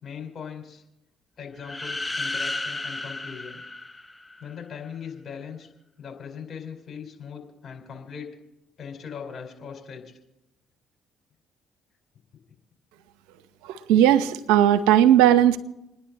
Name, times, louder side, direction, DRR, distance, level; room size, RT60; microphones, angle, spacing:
voice 1, 0.0-0.8 1.4-3.6 4.4-5.7 6.0-8.3 8.8-10.1, left 7 dB, 45° left, 2 dB, 4.9 m, -39 dB
sound 1, 1.6-4.5, left 2 dB, 15° left, 0.8 m, -33 dB
voice 2, 13.9-15.6, right 11 dB, 80° right, 12 dB, 0.8 m, -17 dB
29.5 x 10.0 x 4.2 m, 0.89 s
hypercardioid pair, 55°, 0 cm